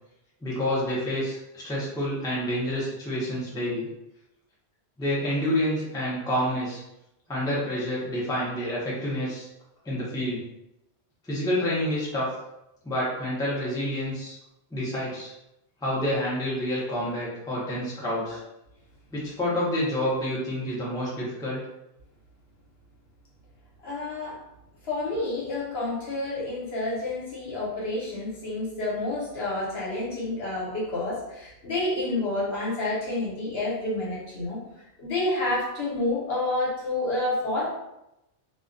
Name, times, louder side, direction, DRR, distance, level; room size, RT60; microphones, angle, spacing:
voice 1, 0.4-3.9 5.0-6.8 7.3-9.5 9.8-10.4 11.2-12.3 12.8-14.3 14.7-15.3 15.8-18.4 19.1-21.6, equal, 5° left, -7 dB, 0.5 m, -28 dB
voice 2, 23.8-24.4 24.9-34.6 35.0-37.7, left 2 dB, 70° left, -6 dB, 1.0 m, -29 dB
2.3 x 2.2 x 2.5 m, 0.87 s
omnidirectional pair, 1.1 m